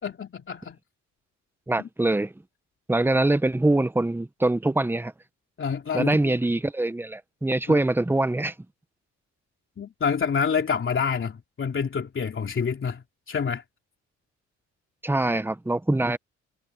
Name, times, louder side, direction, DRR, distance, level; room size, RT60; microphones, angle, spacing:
voice 1, 0.0-0.8 1.8-1.9 5.6-6.3 7.7-7.8 9.8-13.6, left 6 dB, 40° left, 3.0 m, -27 dB
voice 2, 1.7-2.3 2.9-5.1 5.9-8.5 15.0-16.2, right 2 dB, 5° right, 1.0 m, -23 dB
cardioid pair, 90°, 30 cm